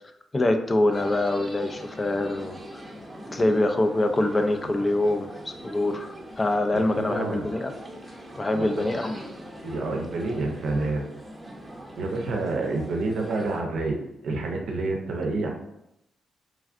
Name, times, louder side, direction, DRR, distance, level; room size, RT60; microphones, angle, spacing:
voice 1, 0.3-2.8 3.3-7.7 8.4-9.2, left 1 dB, 30° left, 7 dB, 0.3 m, -25 dB
sound 1, 0.9-13.6, equal, 15° right, 0.8 m, -41 dB
voice 2, 6.7-7.5 8.5-8.8 9.6-11.1 12.0-15.5, right 3 dB, 70° right, 2 dB, 0.5 m, -28 dB
3.2 x 2.4 x 2.4 m, 0.84 s
cardioid pair, 70°, 0 cm